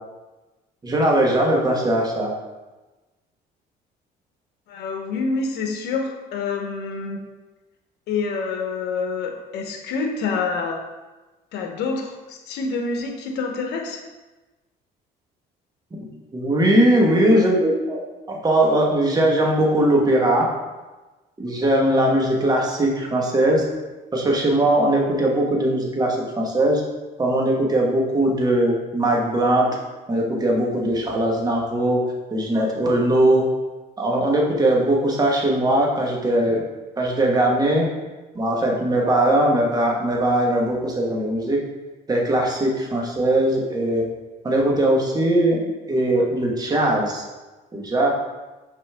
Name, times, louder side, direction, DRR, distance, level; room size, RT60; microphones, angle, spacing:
voice 1, 0.8-2.3 16.3-18.0 18.3-20.5 21.4-23.6 24.1-26.8 27.2-29.7 30.1-32.0 32.3-33.4 34.0-36.6 37.0-37.9 38.3-41.6 42.1-44.1 44.4-45.6 45.9-47.2 47.7-48.1, right 1 dB, 25° right, -1 dB, 1.3 m, -20 dB
voice 2, 4.7-7.2 8.1-10.8 11.5-14.0, left 4 dB, 80° left, 3 dB, 1.0 m, -27 dB
5.6 x 5.2 x 3.5 m, 1.2 s
cardioid pair, 110°, 17 cm